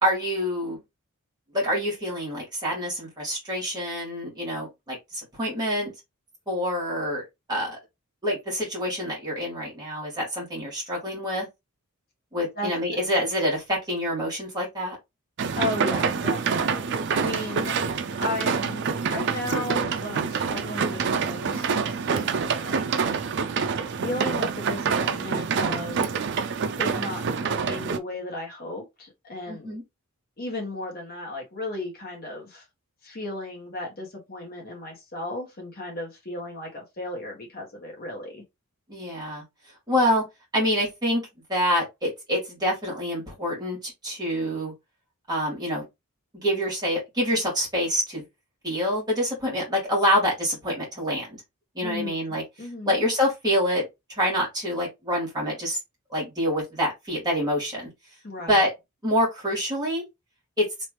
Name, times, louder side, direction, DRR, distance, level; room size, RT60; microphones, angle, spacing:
voice 1, 0.0-0.8 1.5-5.9 6.5-7.2 7.5-7.8 8.2-11.5 12.3-15.0 29.5-29.8 38.9-39.4 39.9-40.2 40.5-41.2 41.5-44.7 45.3-45.9 46.3-48.2 48.6-51.4 51.7-52.4 52.8-53.9 54.2-55.8 56.1-57.9 58.5-58.7 59.0-60.0 60.6-60.7, equal, 20° right, 2.1 m, -26 dB
voice 2, 12.6-13.0 15.6-17.8 18.2-22.8 24.0-26.2 26.8-29.8 30.4-32.6 33.0-38.4 51.8-52.1 52.6-52.9 58.2-58.6, left 2 dB, 40° left, 1.3 m, -35 dB
sound 1, 15.4-28.0, right 5 dB, 50° right, 0.4 m, -26 dB
3.2 x 3.1 x 3.1 m
head